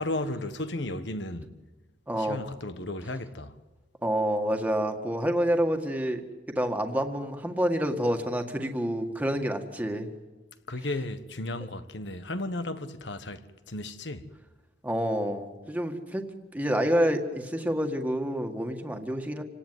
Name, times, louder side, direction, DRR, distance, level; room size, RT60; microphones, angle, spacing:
voice 1, 0.0-1.5 2.2-3.5 10.7-14.3, left 2 dB, 70° left, 1.5 m, -34 dB
voice 2, 2.1-2.4 4.0-6.2 6.5-10.1 14.8-16.3 16.5-19.4, equal, 10° right, 1.9 m, -28 dB
28.0 x 18.0 x 9.4 m
head